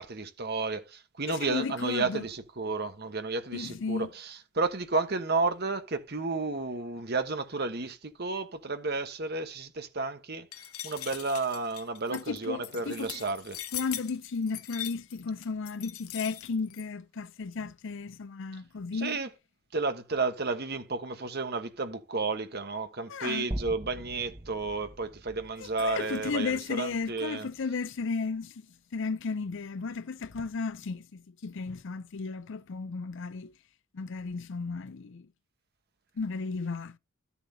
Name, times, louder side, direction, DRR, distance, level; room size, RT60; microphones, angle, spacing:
voice 1, 0.0-10.5 10.8-13.6 19.0-19.3 19.7-27.5, right 3 dB, 45° right, 1.2 m, -32 dB
voice 2, 1.3-2.3 3.5-4.1 12.1-13.2 13.7-19.2 23.1-23.5 25.6-28.6 28.9-33.5 33.9-35.3 36.2-37.0, left 4 dB, 55° left, 0.5 m, -34 dB
sound 1, 10.5-16.8, left 13 dB, 80° left, 0.8 m, -41 dB
sound 2, 23.5-27.7, right 1 dB, 25° right, 0.9 m, -42 dB
13.5 x 7.0 x 2.8 m
head